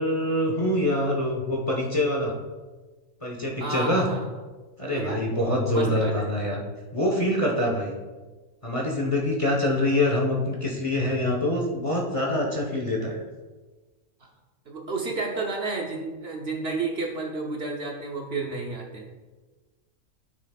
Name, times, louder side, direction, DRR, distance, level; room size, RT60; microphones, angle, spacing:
voice 1, 0.0-2.4 3.2-4.1 4.8-6.6 6.9-7.9 8.6-13.3, left 1 dB, 25° left, -2 dB, 1.0 m, -25 dB
voice 2, 3.6-4.2 4.9-5.2 5.6-6.3 14.7-19.1, right 3 dB, 50° right, 0 dB, 1.1 m, -31 dB
12.5 x 6.4 x 2.4 m, 1.3 s
omnidirectional pair, 1.5 m